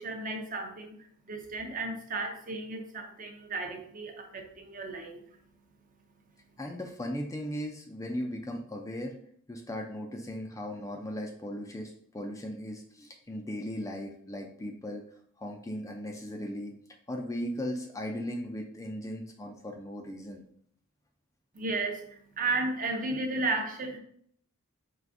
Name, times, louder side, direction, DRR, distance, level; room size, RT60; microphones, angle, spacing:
voice 1, 0.0-6.6 21.5-24.0, right 3 dB, 40° right, 3 dB, 0.6 m, -35 dB
voice 2, 6.6-9.2 9.5-15.0 15.4-16.7 17.1-20.4, equal, 15° left, 2 dB, 0.3 m, -37 dB
4.7 x 3.2 x 2.5 m, 0.62 s
head